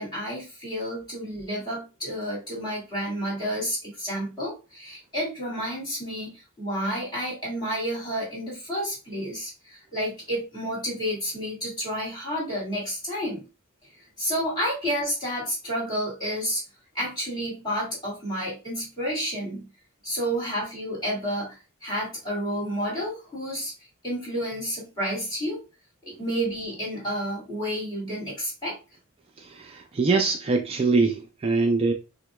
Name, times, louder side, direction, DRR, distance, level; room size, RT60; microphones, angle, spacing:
voice 1, 0.0-13.4 14.2-16.6 16.9-19.7 20.0-23.7 24.0-25.6 26.0-28.8, equal, 20° left, 2.1 m, -30 dB
voice 2, 29.4-31.9, right 4 dB, 30° right, 0.3 m, -23 dB
5.8 x 2.1 x 2.2 m
head